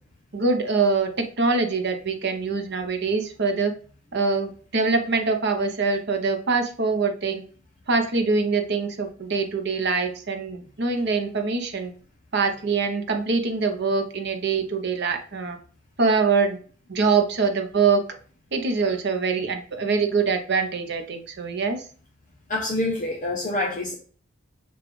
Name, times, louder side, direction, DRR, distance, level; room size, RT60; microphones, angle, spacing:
voice 1, 0.3-3.7 4.1-7.4 7.9-11.9 12.3-15.6 16.0-16.6 16.9-18.0 18.5-21.8, right 4 dB, 55° right, 5 dB, 0.8 m, -24 dB
voice 2, 22.5-23.9, left 2 dB, 35° left, -2 dB, 0.7 m, -26 dB
6.8 x 2.4 x 3.1 m, 0.42 s
head